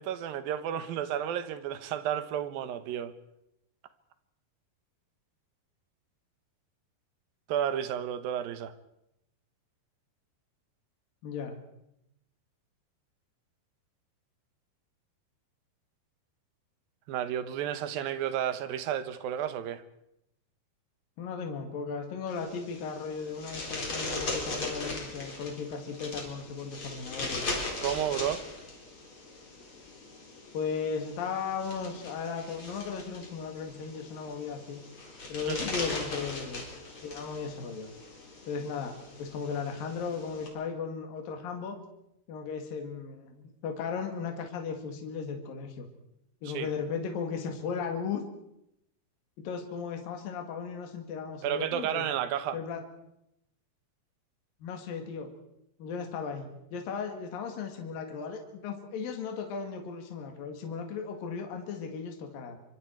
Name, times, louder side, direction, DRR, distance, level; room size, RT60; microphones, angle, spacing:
voice 1, 0.0-3.1 7.5-8.7 17.1-19.8 27.8-28.4 35.4-35.6 46.5-46.7 51.4-52.6, right 10 dB, 70° right, 2.7 m, -32 dB
voice 2, 11.2-11.6 21.2-27.6 30.5-34.9 35.3-37.9 38.5-41.8 42.3-45.9 46.4-48.2 49.4-52.1 52.5-52.8 54.6-55.3 55.8-62.6, left 5 dB, 60° left, 3.7 m, -36 dB
sound 1, 22.3-40.5, left 2 dB, 30° left, 4.8 m, -39 dB
26.0 x 24.5 x 4.7 m
omnidirectional pair, 4.8 m